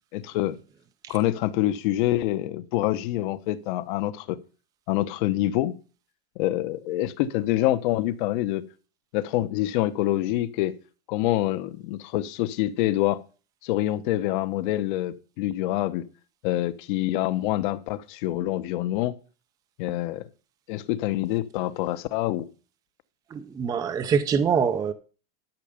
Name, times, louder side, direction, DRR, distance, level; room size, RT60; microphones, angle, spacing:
voice 1, 0.1-0.6 1.1-4.4 4.9-5.7 6.4-8.6 9.1-10.7 11.1-13.2 13.6-16.0 16.4-19.1 19.8-20.2 20.7-22.5, left 15 dB, 55° left, 1.1 m, -26 dB
voice 2, 23.3-24.9, right 6 dB, 10° right, 0.5 m, -24 dB
12.0 x 6.7 x 5.1 m
supercardioid pair, 165°, 31 cm